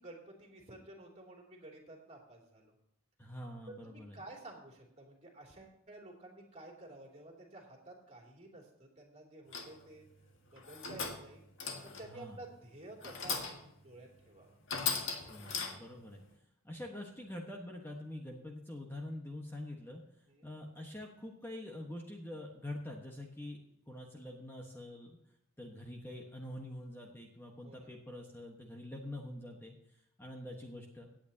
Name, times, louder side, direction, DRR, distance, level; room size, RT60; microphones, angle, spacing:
voice 1, 0.0-2.7 3.8-10.0 10.5-11.4 11.8-13.4 13.8-14.5 20.3-20.5 27.6-27.9, right 2 dB, 30° right, 0 dB, 2.9 m, -52 dB
voice 2, 3.2-4.2 12.0-12.4 15.2-16.2 16.6-20.0 20.4-23.6 23.9-25.2 25.6-29.8 30.2-31.1, left 1 dB, 10° left, 0 dB, 1.3 m, -45 dB
sound 1, 9.5-9.9 10.6-11.3 11.6-12.1 13.0-13.7 14.2-14.3 14.7-16.0, left 5 dB, 60° left, 1.7 m, -38 dB
17.5 x 8.8 x 2.8 m, 0.80 s
head